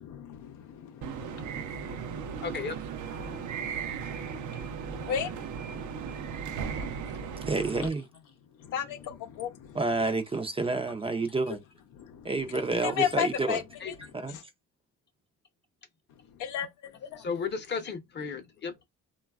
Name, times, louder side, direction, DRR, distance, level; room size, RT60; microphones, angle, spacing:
voice 1, 0.0-2.5 3.2-7.5 8.6-9.8 11.5-11.6 11.9-12.3 12.8-13.9 16.3-17.3, left 9 dB, 90° left, 0.6 m, -36 dB
sound 1, 1.0-7.9, right 7 dB, 75° right, 0.5 m, -37 dB
voice 2, 2.4-2.8 13.8-13.9 14.3-14.4 17.2-18.8, left 5 dB, 35° left, 0.7 m, -34 dB
voice 3, 7.4-8.0 9.7-11.6 12.2-13.6 14.1-14.4, right 3 dB, 20° right, 0.4 m, -29 dB
3.1 x 2.2 x 2.3 m
cardioid pair, 90°, 30 cm